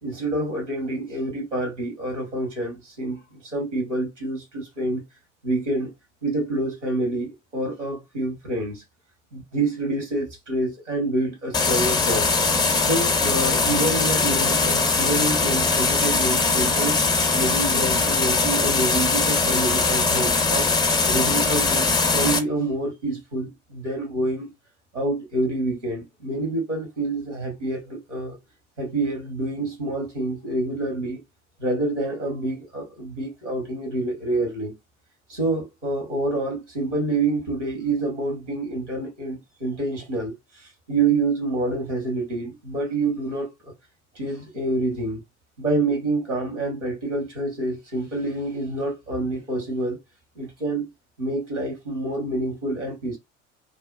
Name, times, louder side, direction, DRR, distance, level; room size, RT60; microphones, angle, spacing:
voice 1, 0.0-5.0 5.4-5.9 6.2-8.8 9.3-12.3 12.8-17.0 17.3-20.7 21.1-24.5 24.9-28.4 28.8-31.2 31.6-34.7 35.3-40.3 40.9-43.7 44.1-45.2 45.6-50.0 50.4-50.9 51.2-53.2, right 2 dB, 85° right, 1.2 m, -27 dB
sound 1, 11.5-22.4, left 4 dB, 15° left, 0.4 m, -21 dB
2.7 x 2.1 x 2.3 m
figure-of-eight pair, 65°, 35 cm